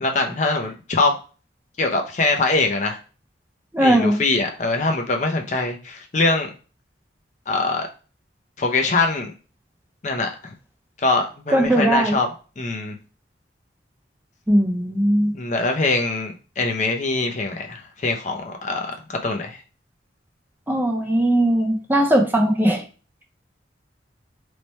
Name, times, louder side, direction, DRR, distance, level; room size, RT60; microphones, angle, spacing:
voice 1, 0.0-1.1 1.8-3.0 3.8-6.5 7.5-7.9 8.6-9.3 10.0-10.5 11.0-12.3 12.6-12.9 15.3-19.6, left 3 dB, 40° left, 3 dB, 0.5 m, -23 dB
voice 2, 3.7-4.2 11.5-12.2 14.5-15.3 20.7-22.8, right 1 dB, 10° right, 1 dB, 0.5 m, -19 dB
3.1 x 2.2 x 4.1 m, 0.35 s
head